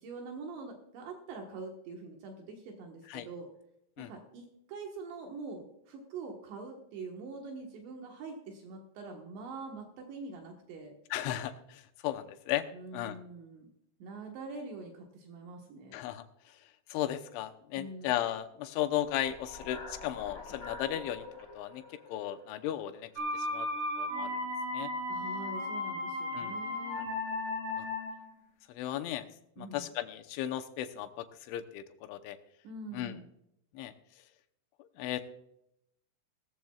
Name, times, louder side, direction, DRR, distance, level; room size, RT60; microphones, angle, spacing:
voice 1, 0.0-3.5 4.0-10.9 12.7-13.7 14.0-16.0 17.8-18.1 25.1-27.1 29.6-29.9 32.6-33.3, right 3 dB, 75° right, 2 dB, 3.5 m, -44 dB
voice 2, 11.1-12.7 12.9-13.2 15.9-16.6 16.9-21.3 21.5-23.7 24.0-24.4 24.7-24.9 26.3-26.6 27.8-27.9 28.7-29.3 29.6-32.4 32.9-33.2 33.7-33.9 34.8-35.2, left 12 dB, 85° left, 8 dB, 3.3 m, -36 dB
sound 1, 19.0-23.3, left 3 dB, 35° left, 4.5 m, -47 dB
sound 2, 23.2-28.3, left 2 dB, 40° right, 6.4 m, -35 dB
18.5 x 14.0 x 2.4 m, 0.80 s
omnidirectional pair, 5.3 m